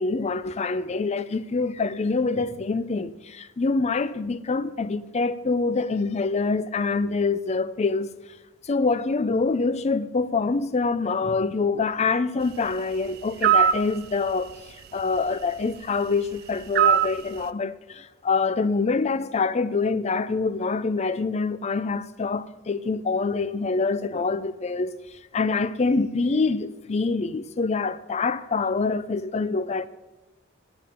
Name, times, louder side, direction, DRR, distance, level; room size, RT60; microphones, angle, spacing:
voice 1, 0.0-8.1 8.6-14.5 14.9-24.9 25.3-29.9, left 4 dB, 30° left, 0.4 m, -25 dB
sound 1, 13.4-13.8 16.8-17.2, right 9 dB, 50° right, 0.4 m, -18 dB
9.2 x 8.8 x 7.2 m
head